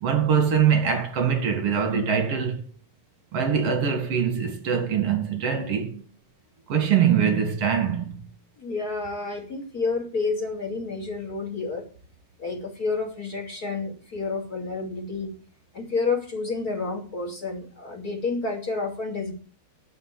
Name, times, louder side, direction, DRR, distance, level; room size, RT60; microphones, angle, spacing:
voice 1, 0.0-2.6 3.3-6.1 6.7-8.2, right 7 dB, 45° right, 2.2 m, -23 dB
voice 2, 8.6-11.9 12.4-15.3 15.7-19.3, left 4 dB, 25° left, 2.3 m, -29 dB
11.0 x 6.0 x 9.0 m
omnidirectional pair, 5.1 m